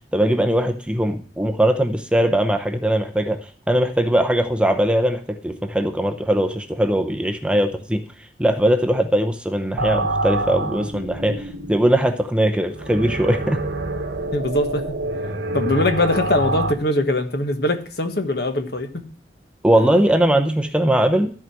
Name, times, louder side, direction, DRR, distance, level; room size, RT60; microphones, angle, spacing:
voice 1, 0.1-8.0 8.4-13.6 19.6-21.3, right 1 dB, 5° right, 6 dB, 0.7 m, -20 dB
sound 1, 9.8-16.7, right 2 dB, 85° right, 1.5 m, -27 dB
voice 2, 14.3-14.9 15.5-19.0, left 1 dB, 60° left, 7 dB, 1.5 m, -22 dB
13.5 x 4.9 x 7.7 m, 0.42 s
head